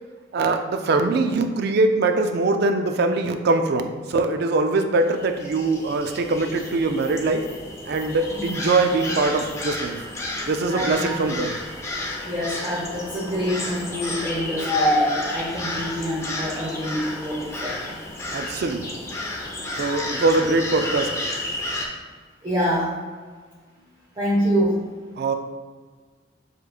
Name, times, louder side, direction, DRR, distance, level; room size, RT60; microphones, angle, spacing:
voice 1, 0.3-7.5 7.9-10.0 10.5-11.6 18.3-18.9 19.8-21.1 25.2-25.3, right 3 dB, 60° right, 7 dB, 0.4 m, -22 dB
sound 1, 5.0-21.9, left 1 dB, 15° left, 0.6 m, -30 dB
voice 2, 10.7-11.3 12.2-17.8 19.2-19.3 22.4-22.9 24.2-24.9, equal, 25° right, -6 dB, 0.7 m, -26 dB
6.9 x 3.1 x 2.3 m, 1.5 s
head